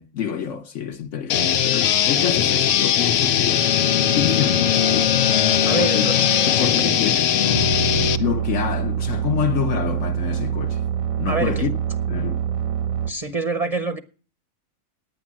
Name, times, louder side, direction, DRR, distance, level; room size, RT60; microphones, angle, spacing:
voice 1, 0.0-3.7 4.1-5.2 5.8-6.3 6.6-7.8 8.2-10.8 11.2-11.7 12.1-12.4, left 8 dB, 65° left, 1.1 m, -27 dB
sound 1, 1.3-8.2, left 10 dB, 85° left, 1.2 m, -20 dB
Bowed string instrument, 3.5-7.6, left 7 dB, 40° left, 0.6 m, -26 dB
voice 2, 5.6-7.6 11.3-11.7 13.1-14.0, right 4 dB, 35° right, 0.7 m, -27 dB
sound 2, 7.5-13.1, right 9 dB, 85° right, 1.4 m, -25 dB
10.0 x 9.3 x 7.4 m
omnidirectional pair, 1.4 m